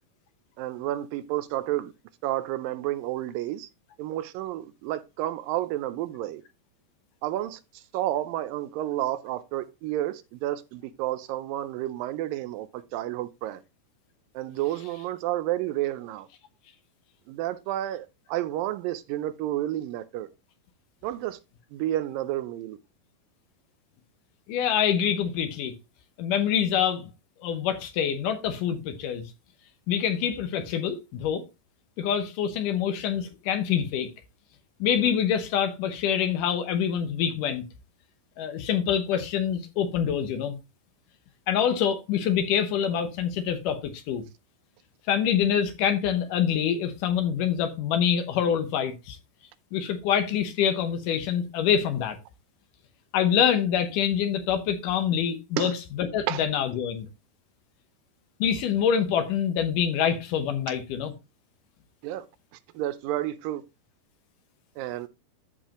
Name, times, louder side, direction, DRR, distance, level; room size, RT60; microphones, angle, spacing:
voice 1, 0.6-1.9 2.2-3.7 4.0-6.4 7.2-7.6 7.9-13.6 14.4-16.3 17.3-20.3 21.0-21.4 21.7-22.8 55.6-55.7 56.3-56.4 62.0-62.3 62.8-63.6 64.8-65.1, right 14 dB, 80° right, 2.2 m, -30 dB
voice 2, 24.5-25.8 26.2-27.1 27.4-29.3 29.9-31.4 32.0-34.1 34.8-37.6 38.4-40.6 41.5-44.2 45.1-49.2 49.7-52.2 53.1-57.1 58.4-61.1, left 8 dB, 70° left, 2.4 m, -26 dB
13.5 x 4.7 x 2.9 m
omnidirectional pair, 4.1 m